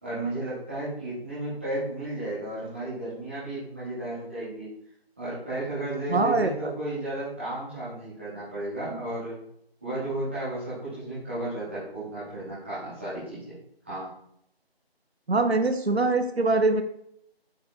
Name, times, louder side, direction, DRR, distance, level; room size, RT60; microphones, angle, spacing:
voice 1, 0.0-4.7 5.2-9.3 9.8-13.6 13.8-14.1, right 1 dB, 10° right, -12 dB, 1.8 m, -33 dB
voice 2, 6.1-6.7 15.3-16.8, right 3 dB, 90° right, 8 dB, 0.8 m, -23 dB
7.8 x 5.1 x 2.4 m, 0.72 s
figure-of-eight pair, 170°, 31 cm